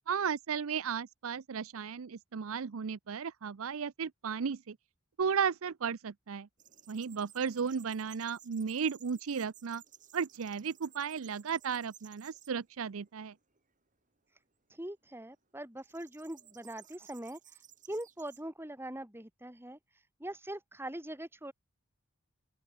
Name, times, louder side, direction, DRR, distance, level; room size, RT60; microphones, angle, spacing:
voice 1, 0.1-4.8 5.2-6.5 6.9-9.8 10.1-13.3, right 6 dB, 70° right, 0.5 m, -34 dB
sound 1, 6.6-12.5 13.1-13.6 15.8-18.4, right 10 dB, 35° right, 5.8 m, -58 dB
voice 2, 14.7-17.6 17.9-19.8 20.2-21.5, right 1 dB, 10° right, 2.8 m, -42 dB
open air
head